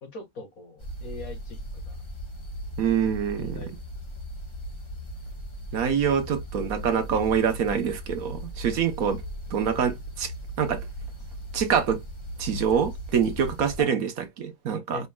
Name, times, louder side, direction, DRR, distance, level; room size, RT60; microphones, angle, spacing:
voice 1, 0.0-2.0 3.4-3.7 13.8-13.9 14.9-15.1, left 2 dB, 60° left, 2.0 m, -40 dB
sound 1, 0.8-13.8, equal, 20° left, 1.2 m, -38 dB
voice 2, 2.8-3.6 5.7-9.2 9.5-10.3 10.6-10.9 11.5-12.0 12.4-15.1, right 7 dB, 65° right, 1.3 m, -25 dB
5.3 x 3.5 x 2.2 m
omnidirectional pair, 1.7 m